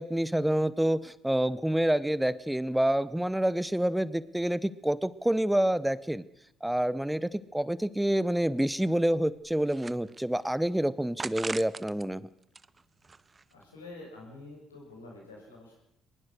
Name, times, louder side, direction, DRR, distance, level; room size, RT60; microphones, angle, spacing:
voice 1, 0.0-6.2 6.6-12.3, right 1 dB, 5° right, 18 dB, 1.0 m, -28 dB
sound 1, 9.4-10.5 11.2-12.1 12.4-13.6, right 4 dB, 30° right, 0.7 m, -41 dB
voice 2, 13.5-15.8, left 2 dB, 90° left, -1 dB, 7.0 m, -47 dB
21.5 x 21.5 x 6.5 m, 0.82 s
hypercardioid pair, 50°, 0 cm